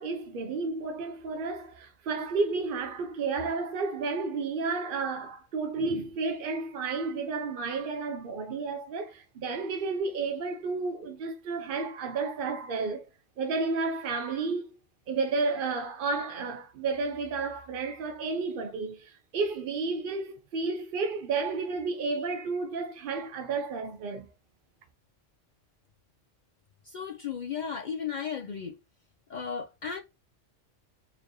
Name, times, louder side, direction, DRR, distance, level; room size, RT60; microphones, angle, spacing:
voice 1, 0.0-13.1 13.4-14.7 15.1-24.3, right 4 dB, 55° right, 0.6 m, -32 dB
voice 2, 26.9-28.8 29.3-30.0, left 7 dB, 70° left, 0.4 m, -35 dB
4.1 x 3.1 x 2.6 m
omnidirectional pair, 1.3 m